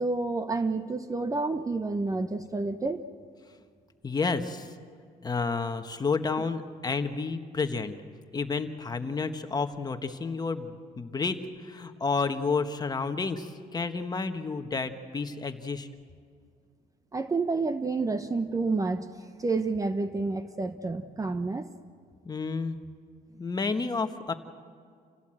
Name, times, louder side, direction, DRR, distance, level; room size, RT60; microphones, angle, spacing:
voice 1, 0.0-3.1 17.1-19.1 19.4-21.7, right 3 dB, 20° right, 10 dB, 0.9 m, -29 dB
voice 2, 4.0-4.7 5.2-7.9 8.3-15.9 22.2-22.8 23.4-24.3, left 4 dB, 25° left, 7 dB, 1.4 m, -30 dB
28.0 x 17.0 x 7.7 m, 2.1 s
cardioid pair, 110°, 17 cm